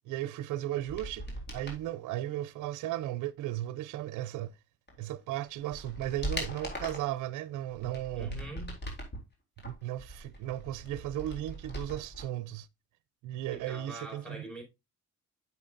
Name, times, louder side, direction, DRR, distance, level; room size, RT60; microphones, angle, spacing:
voice 1, 0.1-4.5 5.0-8.4 9.6-12.7 13.2-14.4, right 13 dB, 85° right, 0.5 m, -36 dB
sound 1, 0.8-1.8 4.9-5.0 5.5-7.1 7.7-9.2 9.6-12.3 12.5-12.6, equal, 35° left, 3.8 m, -40 dB
voice 2, 8.1-8.8 13.5-14.6, right 1 dB, 5° left, 4.7 m, -43 dB
9.6 x 7.1 x 2.5 m
cardioid pair, 90°, 30 cm